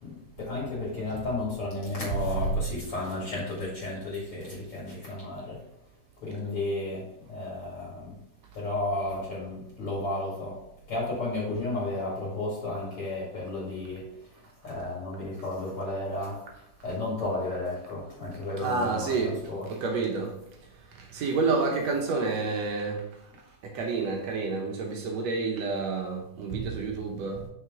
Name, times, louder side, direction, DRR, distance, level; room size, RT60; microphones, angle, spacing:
voice 1, 0.0-5.6 6.2-8.1 8.5-10.6 10.9-14.0 14.4-16.4 16.8-19.7, left 2 dB, 45° left, -5 dB, 2.7 m, -33 dB
voice 2, 18.6-20.4 20.9-23.1 23.6-27.5, right 4 dB, 70° right, 1 dB, 1.7 m, -29 dB
6.4 x 5.8 x 3.7 m, 0.77 s
omnidirectional pair, 4.0 m